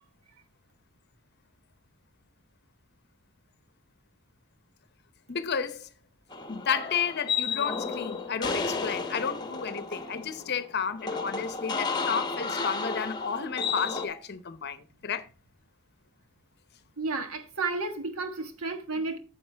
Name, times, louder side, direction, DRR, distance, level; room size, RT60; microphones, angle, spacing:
voice 1, 5.3-5.9 6.5-15.3, left 6 dB, 50° left, 0.7 m, -32 dB
sound 1, 6.3-14.1, left 4 dB, 20° left, 0.9 m, -32 dB
voice 2, 17.0-19.2, right 3 dB, 75° right, 1.4 m, -32 dB
9.2 x 7.1 x 3.3 m
head